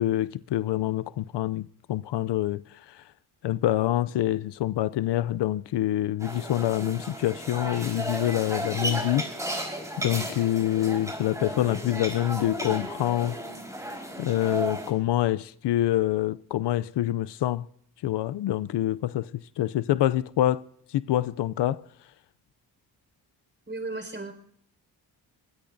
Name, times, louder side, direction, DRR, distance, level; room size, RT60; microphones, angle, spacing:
voice 1, 0.0-2.6 2.9-3.0 3.4-9.2 10.0-13.4 14.2-17.7 18.0-20.6 20.9-21.8, left 13 dB, 80° left, 0.5 m, -26 dB
sound 1, 6.2-14.9, right 1 dB, 10° right, 4.3 m, -34 dB
voice 2, 23.7-24.3, right 2 dB, 30° right, 4.8 m, -34 dB
23.5 x 17.5 x 2.6 m
cardioid pair, 65°, 41 cm